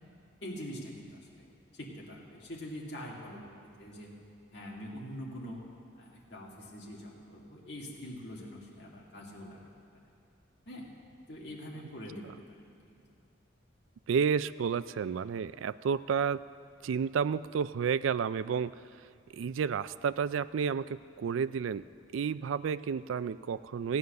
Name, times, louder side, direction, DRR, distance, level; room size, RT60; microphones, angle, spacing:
voice 1, 0.4-1.4 1.7-3.5 3.8-4.2 4.5-5.6 6.0-9.6 10.7-10.9 11.3-12.2 12.5-13.0, equal, 60° left, -4 dB, 2.1 m, -44 dB
voice 2, 14.1-16.4 16.8-18.8 19.3-21.8 22.1-24.0, right 6 dB, 85° right, 16 dB, 0.3 m, -31 dB
15.5 x 9.6 x 6.6 m, 2.4 s
head